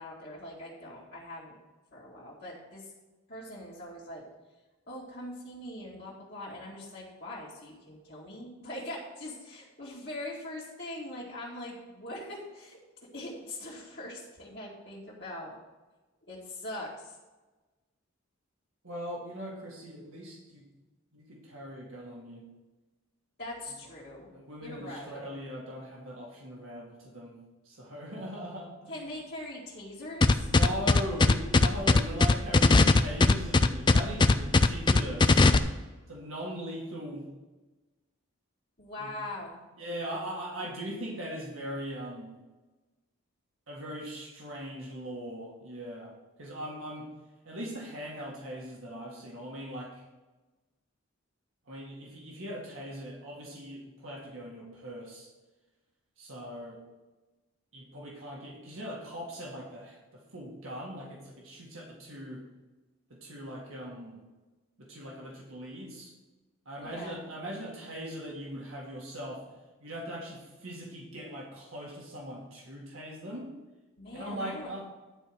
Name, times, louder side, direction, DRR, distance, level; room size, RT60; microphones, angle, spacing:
voice 1, 0.0-1.5 1.9-2.9 3.3-4.2 4.9-12.8 13.1-15.6 16.3-17.2 23.4-24.3 24.6-25.2 28.9-30.5 38.8-39.6 66.8-67.2 74.0-74.7, left 1 dB, 50° left, -8 dB, 2.0 m, -42 dB
voice 2, 18.8-20.7 21.1-22.5 24.3-27.4 27.6-28.9 30.4-35.5 36.1-37.3 39.0-39.1 39.8-42.3 43.7-47.1 47.4-50.0 51.7-55.3 56.2-56.8 57.7-62.4 63.1-64.2 64.8-66.1 66.7-73.5 74.1-74.9, equal, 75° right, -2 dB, 2.0 m, -40 dB
sound 1, 30.2-35.6, left 3 dB, 20° left, 0.3 m, -19 dB
11.0 x 4.6 x 6.3 m, 1.2 s
head